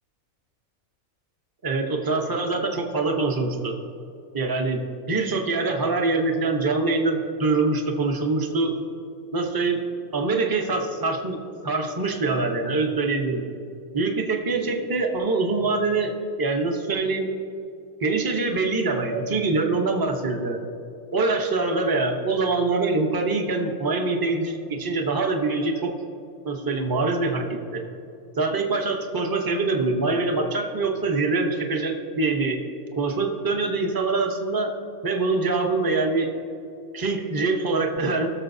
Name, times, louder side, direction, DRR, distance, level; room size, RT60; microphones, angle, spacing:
voice 1, 1.6-3.7 4.3-4.8 5.1-8.7 9.3-9.8 10.1-13.4 13.9-16.1 16.4-17.3 18.0-20.6 21.1-25.9 26.4-27.8 28.4-32.6 33.0-34.7 35.0-36.3 36.9-38.3, right 3 dB, 20° right, 3 dB, 0.6 m, -24 dB
19.5 x 6.8 x 2.7 m, 2.6 s
omnidirectional pair, 1.5 m